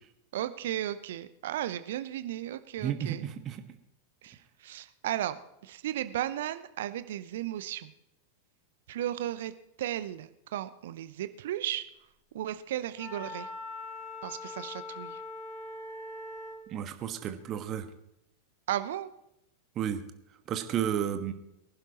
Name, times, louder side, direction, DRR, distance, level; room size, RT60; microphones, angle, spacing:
voice 1, 0.3-3.2 4.2-4.4 4.6-5.4 5.6-7.9 8.9-9.5 9.8-11.8 12.3-13.5 14.2-15.2 18.7-19.1, right 12 dB, 55° right, 13 dB, 0.7 m, -35 dB
voice 2, 2.8-3.6 16.7-17.9 19.7-20.0 20.5-21.3, right 9 dB, 30° right, 8 dB, 1.4 m, -32 dB
Wind instrument woodwind instrument, 13.0-16.7, left 2 dB, 25° left, 1.9 m, -41 dB
23.5 x 11.5 x 3.0 m, 0.83 s
figure-of-eight pair, 90°, 0 cm